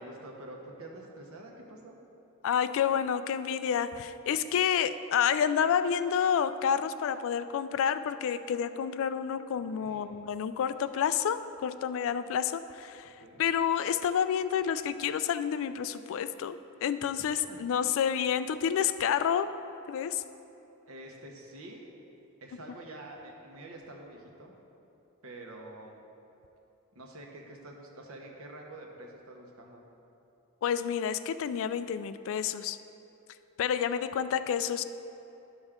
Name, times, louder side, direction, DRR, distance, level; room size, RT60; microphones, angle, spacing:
voice 1, 0.0-2.0 9.5-10.1 13.2-13.4 17.5-17.6 20.9-21.9 22.4-24.5 25.2-26.0 26.9-29.8, right 1 dB, 65° right, 0 dB, 1.1 m, -47 dB
voice 2, 2.4-13.1 13.4-19.5 19.9-20.2 30.6-32.8 33.6-34.8, left 8 dB, 60° left, 12 dB, 0.3 m, -29 dB
11.5 x 6.2 x 3.6 m, 2.8 s
head